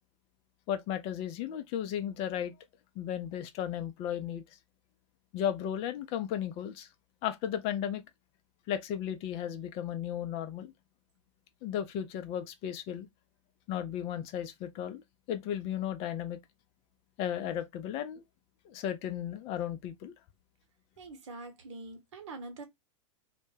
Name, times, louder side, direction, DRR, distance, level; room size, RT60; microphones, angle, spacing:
voice 1, 0.7-2.5 3.0-4.4 5.3-6.9 7.2-8.0 8.7-10.7 11.6-13.1 13.7-15.0 15.3-16.4 17.2-18.2 18.7-20.1, left 10 dB, 35° left, 0.4 m, -35 dB
voice 2, 21.0-22.6, right 3 dB, 65° right, 0.9 m, -44 dB
2.1 x 2.1 x 3.1 m
hypercardioid pair, 100°, 16 cm